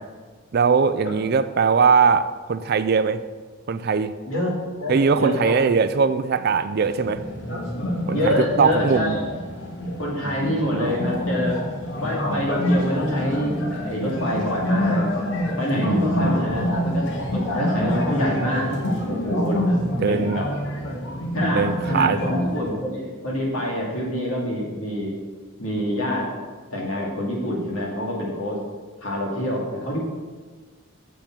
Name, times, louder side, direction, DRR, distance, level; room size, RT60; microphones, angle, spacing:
voice 1, 0.5-3.2 3.7-4.1 4.9-7.2 8.1-9.2 10.2-10.4 10.7-11.0 15.7-16.3 19.9-20.4 21.4-22.2, right 5 dB, 50° right, 13 dB, 0.4 m, -21 dB
voice 2, 4.8-5.5 8.1-9.2 10.0-11.6 12.0-15.1 15.6-18.7 19.1-19.6 20.1-20.5 21.3-25.1 25.6-26.3 26.7-28.6 29.0-30.0, left 1 dB, 85° left, -2 dB, 2.4 m, -26 dB
sound 1, 6.8-22.7, equal, 60° left, 1.5 m, -26 dB
7.1 x 7.0 x 6.0 m, 1.4 s
head